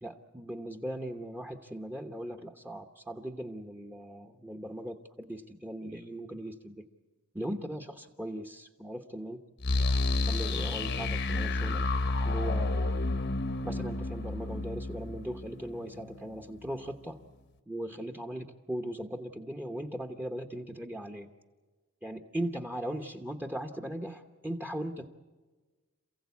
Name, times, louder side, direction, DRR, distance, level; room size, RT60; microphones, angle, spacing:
voice 1, 0.0-6.9 7.3-9.4 10.3-11.9 12.2-13.0 13.6-17.2 17.7-21.3 22.0-25.2, right 1 dB, 10° right, 6 dB, 1.0 m, -39 dB
sound 1, 9.6-16.4, left 2 dB, 55° left, 1.1 m, -30 dB
28.0 x 15.5 x 8.4 m, 1.3 s
head